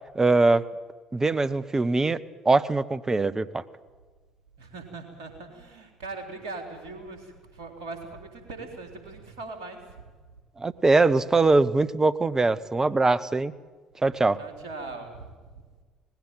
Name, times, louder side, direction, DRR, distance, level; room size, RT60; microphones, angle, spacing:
voice 1, 0.1-0.6 1.1-2.2 2.4-3.6 10.6-13.5 14.0-14.4, right 3 dB, 20° right, 14 dB, 1.0 m, -22 dB
voice 2, 4.6-10.0 14.3-15.6, right 3 dB, 70° right, 4 dB, 3.8 m, -40 dB
19.0 x 16.5 x 9.2 m, 1.4 s
figure-of-eight pair, 55°, 3 cm